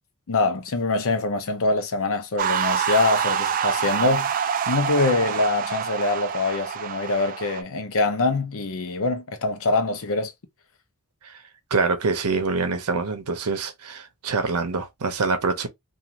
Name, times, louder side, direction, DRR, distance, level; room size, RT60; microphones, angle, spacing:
voice 1, 0.3-10.3, left 3 dB, 65° left, 0.7 m, -24 dB
sound 1, 2.4-7.6, right 8 dB, 40° right, 0.3 m, -26 dB
voice 2, 11.7-15.7, right 4 dB, 75° right, 0.7 m, -25 dB
2.5 x 2.5 x 2.9 m
head